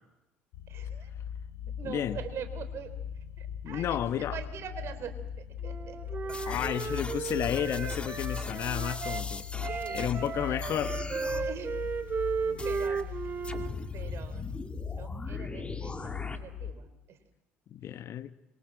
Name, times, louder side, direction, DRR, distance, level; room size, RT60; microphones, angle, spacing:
sound 1, 0.5-16.7, left 8 dB, 70° left, 4.0 m, -39 dB
voice 1, 0.7-1.1 1.8-7.0 9.5-10.6 11.3-11.8 12.5-13.3 13.9-17.2, right 7 dB, 50° right, 3.6 m, -44 dB
voice 2, 1.8-2.2 3.6-4.3 6.5-9.5 9.9-11.2 17.7-18.3, left 10 dB, 50° left, 1.1 m, -32 dB
Wind instrument woodwind instrument, 5.6-9.2 9.6-13.7, right 5 dB, 35° right, 1.7 m, -35 dB
sound 2, 6.3-10.3 10.6-11.5 12.6-13.0 13.4-16.4, left 3 dB, 20° left, 2.2 m, -41 dB
26.5 x 24.0 x 7.6 m
hypercardioid pair, 60°, 6 cm